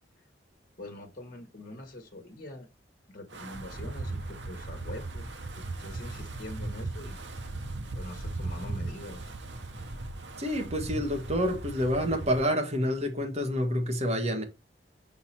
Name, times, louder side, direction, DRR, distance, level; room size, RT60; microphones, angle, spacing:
voice 1, 0.8-2.7 3.1-7.2 7.9-9.3, left 1 dB, 50° left, 1.6 m, -44 dB
Wind, 3.3-12.5, right 2 dB, 70° right, 1.0 m, -38 dB
voice 2, 10.4-14.4, equal, 40° right, 1.7 m, -28 dB
5.9 x 4.0 x 4.4 m
head